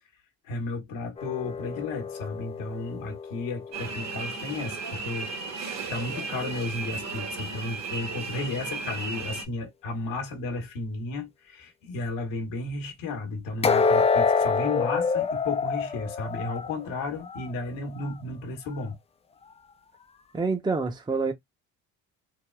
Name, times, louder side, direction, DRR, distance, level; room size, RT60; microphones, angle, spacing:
voice 1, 0.4-18.9, left 3 dB, 75° left, 1.1 m, -33 dB
sound 1, 1.2-4.3 13.6-17.5 17.9-18.1 18.7-18.8, left 5 dB, 15° left, 0.3 m, -27 dB
sound 2, 3.7-9.5, right 4 dB, 35° right, 1.1 m, -35 dB
voice 2, 20.3-21.3, right 4 dB, 10° right, 0.7 m, -27 dB
3.5 x 2.2 x 2.2 m
hypercardioid pair, 65°, 44 cm